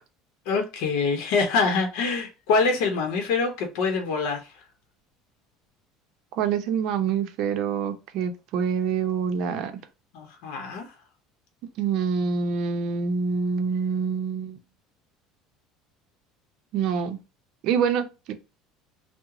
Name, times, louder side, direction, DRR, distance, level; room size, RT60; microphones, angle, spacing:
voice 1, 0.5-4.4 10.1-10.9, left 4 dB, 75° left, 0.7 m, -25 dB
voice 2, 6.3-9.7 11.8-14.6 16.7-17.2 17.6-18.3, right 6 dB, 55° right, 0.5 m, -26 dB
3.1 x 2.0 x 3.6 m
cardioid pair, 150°, 0 cm